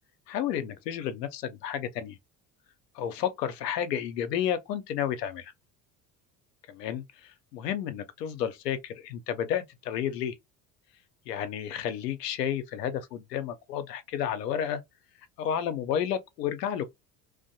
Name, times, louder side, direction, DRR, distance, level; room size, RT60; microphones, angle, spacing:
voice 1, 0.3-2.2 2.9-5.5 6.7-10.3 11.3-14.8 15.4-16.9, left 9 dB, 75° left, 0.6 m, -31 dB
2.5 x 2.2 x 2.7 m
hypercardioid pair, 65°, 49 cm